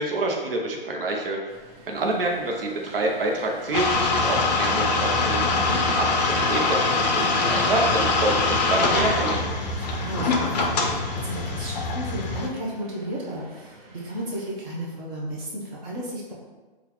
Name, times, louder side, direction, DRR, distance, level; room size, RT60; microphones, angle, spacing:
voice 1, 0.0-1.5 1.9-5.5 6.0-9.3, right 2 dB, 70° right, 0 dB, 0.7 m, -27 dB
sound 1, 1.5-14.5, right 1 dB, 40° right, 0.8 m, -42 dB
sound 2, 3.7-12.5, left 3 dB, 45° left, 0.5 m, -23 dB
voice 2, 5.5-5.8 9.5-16.3, right 1 dB, 15° right, -4 dB, 0.5 m, -34 dB
3.8 x 2.4 x 3.0 m, 1.3 s
hypercardioid pair, 155°, 29 cm